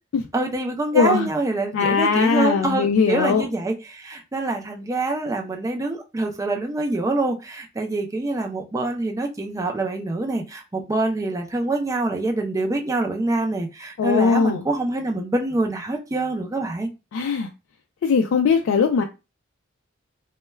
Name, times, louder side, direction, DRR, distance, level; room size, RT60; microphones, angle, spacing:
voice 1, 0.3-16.9, right 2 dB, 15° right, 0.4 m, -25 dB
voice 2, 0.9-1.3 1.7-3.5 14.0-14.6 17.1-17.5 18.0-19.0, left 5 dB, 75° left, 0.3 m, -20 dB
2.2 x 2.1 x 3.1 m
head